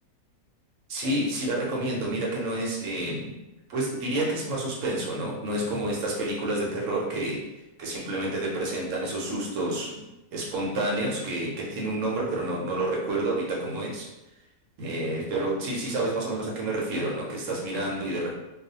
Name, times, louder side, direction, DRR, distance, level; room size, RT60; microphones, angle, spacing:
voice 1, 0.9-3.4 3.7-7.5 7.8-10.1 10.3-14.1 14.8-18.3, right 1 dB, 70° right, -2 dB, 0.9 m, -29 dB
2.4 x 2.2 x 2.7 m, 0.96 s
omnidirectional pair, 1.5 m